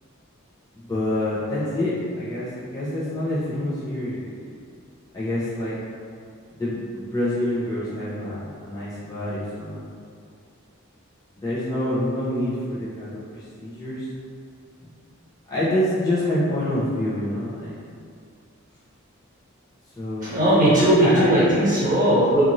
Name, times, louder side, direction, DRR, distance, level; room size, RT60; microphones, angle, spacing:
voice 1, 0.8-4.5 5.1-5.8 6.5-9.8 11.4-14.1 14.8-14.9 15.5-17.8 20.0-20.4 21.0-21.3, left 1 dB, 20° left, -10 dB, 0.5 m, -27 dB
voice 2, 20.2-22.4, right 1 dB, 40° right, -11 dB, 1.2 m, -18 dB
2.6 x 2.4 x 2.9 m, 2.3 s
head